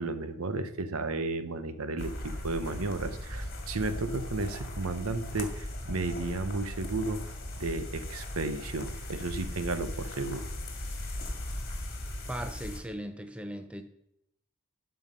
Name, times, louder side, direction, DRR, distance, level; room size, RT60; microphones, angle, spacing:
voice 1, 0.0-7.2 7.6-10.5, right 3 dB, 80° right, 11 dB, 0.9 m, -33 dB
sound 1, 2.0-12.8, left 1 dB, 45° left, 2.0 m, -38 dB
voice 2, 12.3-13.8, equal, 5° right, 7 dB, 0.5 m, -38 dB
12.0 x 5.8 x 5.6 m, 0.79 s
head